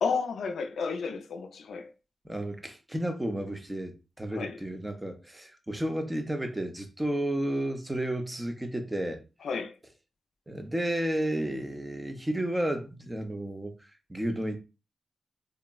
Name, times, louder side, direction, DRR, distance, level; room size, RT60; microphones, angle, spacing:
voice 1, 0.0-1.9 4.3-4.6 9.4-9.7, left 5 dB, 85° left, 0.3 m, -31 dB
voice 2, 2.2-9.2 10.5-14.6, right 1 dB, 10° right, 0.5 m, -32 dB
3.5 x 2.0 x 2.2 m
wide cardioid pair, 115°, 0 cm